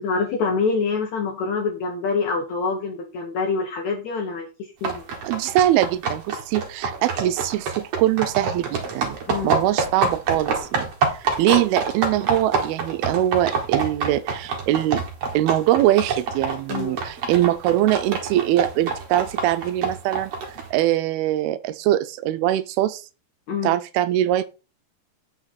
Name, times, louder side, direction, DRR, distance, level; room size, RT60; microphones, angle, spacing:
voice 1, 0.0-4.5 4.8-5.0 9.3-9.6 11.5-11.6 16.7-17.0 23.5-23.7, left 4 dB, 70° left, 1.7 m, -25 dB
sound 1, 4.8-20.7, right 5 dB, 50° right, 2.1 m, -26 dB
voice 2, 5.2-9.2 9.4-15.0 15.3-23.0 23.6-24.4, right 14 dB, 80° right, 2.4 m, -22 dB
8.5 x 6.3 x 4.0 m
omnidirectional pair, 4.6 m